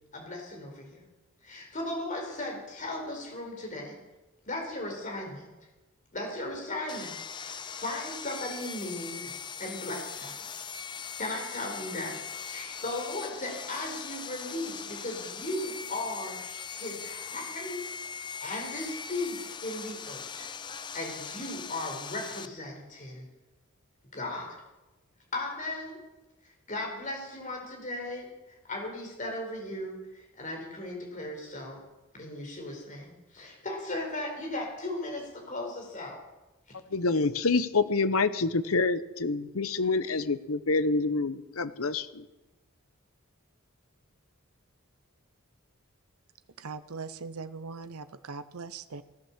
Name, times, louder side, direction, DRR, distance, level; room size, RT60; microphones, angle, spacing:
voice 1, 0.1-1.0 1.4-4.0 4.4-5.5 6.1-9.3 9.6-10.4 11.2-20.5 20.9-23.3 24.1-24.5 25.3-26.0 26.4-31.8 32.1-36.2, left 1 dB, 35° left, 4.5 m, -37 dB
Sawing, 6.9-22.5, left 6 dB, 20° left, 0.5 m, -40 dB
voice 2, 36.9-42.3, left 3 dB, 75° left, 0.9 m, -27 dB
voice 3, 46.6-49.0, right 4 dB, 85° right, 0.7 m, -40 dB
17.0 x 11.5 x 7.4 m
head